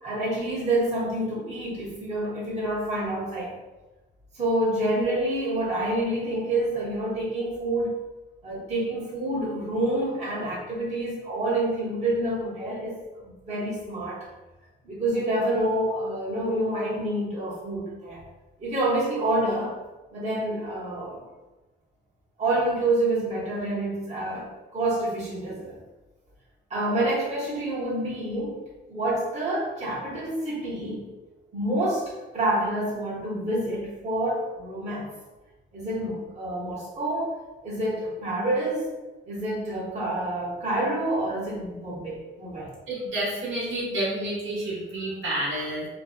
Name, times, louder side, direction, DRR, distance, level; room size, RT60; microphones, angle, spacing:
voice 1, 0.0-3.6 4.3-8.0 8.4-14.3 14.8-18.2 18.6-19.7 20.1-21.2 22.4-25.8 26.7-28.6 28.9-31.1 31.5-35.1 35.7-38.9 39.3-42.7, right 1 dB, 35° right, -7 dB, 0.9 m, -28 dB
voice 2, 42.9-45.9, right 1 dB, 75° right, -7 dB, 1.1 m, -29 dB
2.6 x 2.1 x 2.4 m, 1.1 s
cardioid pair, 90°, 20 cm